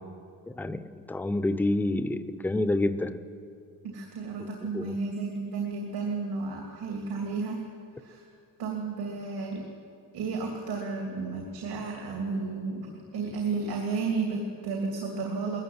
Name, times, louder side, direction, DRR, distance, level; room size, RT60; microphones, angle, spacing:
voice 1, 1.1-3.2 4.7-4.9, left 2 dB, 5° left, 12 dB, 0.6 m, -27 dB
voice 2, 3.8-7.6 8.0-8.2 8.6-9.6 10.1-12.9 13.1-15.6, right 4 dB, 80° right, 1 dB, 3.0 m, -32 dB
20.0 x 15.0 x 9.5 m, 2.4 s
cardioid pair, 150°, 37 cm